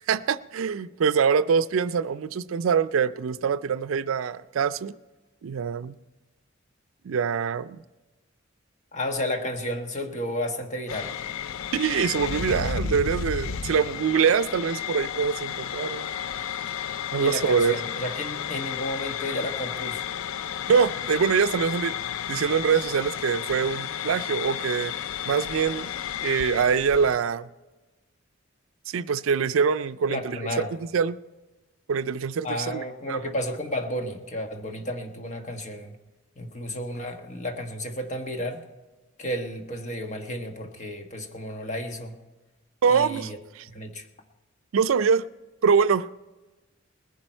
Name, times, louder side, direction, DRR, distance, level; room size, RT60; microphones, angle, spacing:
voice 1, 0.0-4.9 5.4-6.0 7.0-7.8 11.7-16.1 17.1-17.7 20.7-21.9 22.3-24.9 25.2-25.9 26.2-27.5 28.9-30.4 30.9-31.2 31.9-33.3 42.8-43.6 44.7-45.2 45.6-46.1, right 6 dB, 80° right, 0.4 m, -24 dB
voice 2, 8.9-11.1 17.2-20.0 30.1-30.7 32.4-35.9 36.4-38.6 39.2-42.1 42.9-43.4 43.7-44.1, left 1 dB, 35° left, 1.3 m, -32 dB
sound 1, 10.9-27.2, left 8 dB, 90° left, 0.5 m, -32 dB
20.0 x 10.5 x 4.4 m
head